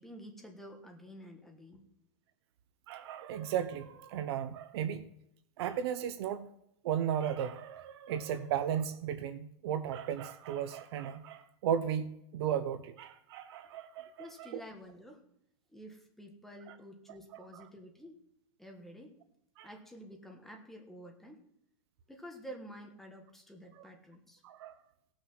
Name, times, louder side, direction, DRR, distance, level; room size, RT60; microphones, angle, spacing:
voice 1, 0.0-1.8 14.2-15.2 15.7-18.2 18.6-19.2 19.6-21.4 22.1-24.4, equal, ahead, 2 dB, 1.3 m, -50 dB
voice 2, 2.9-5.1 5.6-6.5 6.8-14.6 16.7-16.8 17.3-17.6 19.6-19.7 24.4-24.8, right 9 dB, 55° right, 12 dB, 0.8 m, -35 dB
16.5 x 6.3 x 6.1 m, 0.77 s
supercardioid pair, 165°, 17 cm